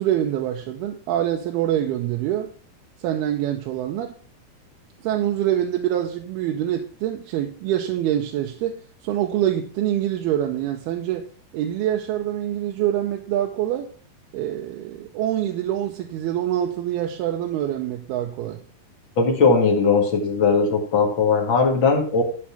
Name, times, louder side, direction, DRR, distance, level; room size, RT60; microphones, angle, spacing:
voice 1, 0.0-2.5 3.0-4.1 5.0-11.2 11.5-13.9 14.3-18.6, right 11 dB, 90° right, 2.8 m, -25 dB
voice 2, 19.2-22.2, left 4 dB, 40° left, 2.1 m, -19 dB
12.5 x 4.7 x 5.8 m
omnidirectional pair, 4.4 m